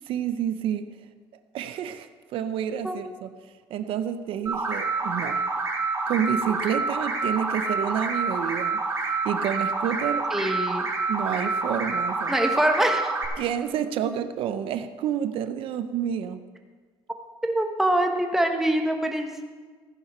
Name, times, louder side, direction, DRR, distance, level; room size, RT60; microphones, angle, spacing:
voice 1, 0.1-0.9 1.5-3.3 3.7-5.4 6.1-8.8 9.2-10.5 11.1-12.3 13.4-16.4, right 9 dB, 70° right, 10 dB, 0.6 m, -29 dB
sound 1, 4.5-13.3, right 3 dB, 30° right, 2.0 m, -27 dB
voice 2, 10.3-10.9 12.3-13.1 17.4-19.4, right 1 dB, 5° right, 3 dB, 1.1 m, -24 dB
15.0 x 10.0 x 4.3 m, 1.5 s
cardioid pair, 145°, 9 cm